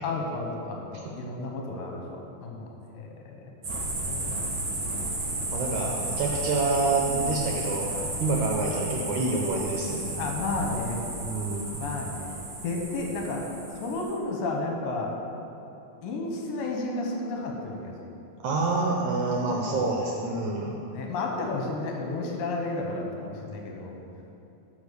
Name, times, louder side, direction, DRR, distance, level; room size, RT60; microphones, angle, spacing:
voice 1, 0.0-3.4 4.1-4.9 5.8-5.9 8.4-8.5 10.2-11.0 11.8-12.3 12.6-13.4 13.8-15.1 16.0-17.9 19.7-19.9 20.9-24.0, left 3 dB, 75° left, 0 dB, 2.7 m, -32 dB
sound 1, 3.6-14.1, right 2 dB, 35° right, 2.5 m, -33 dB
voice 2, 5.5-7.9 8.2-10.2 11.2-11.8 18.4-20.8, right 3 dB, 75° right, -1 dB, 1.8 m, -27 dB
10.5 x 5.2 x 6.7 m, 2.8 s
omnidirectional pair, 4.2 m